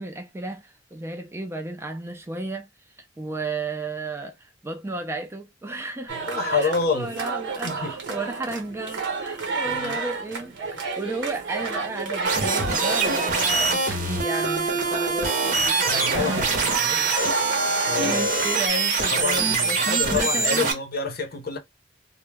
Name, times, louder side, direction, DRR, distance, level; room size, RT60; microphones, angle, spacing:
voice 1, 0.0-2.7 3.2-17.0 17.4-17.5 17.9-20.8, right 2 dB, 15° right, 0.4 m, -33 dB
voice 2, 6.1-7.1 7.6-7.9 9.7-10.0 15.9-17.1 17.9-18.3 19.1-21.6, left 4 dB, 55° left, 0.6 m, -28 dB
sound 1, 6.1-18.7, right 4 dB, 80° right, 0.8 m, -32 dB
sound 2, 12.2-20.7, right 4 dB, 50° right, 0.7 m, -24 dB
2.1 x 2.0 x 3.2 m
head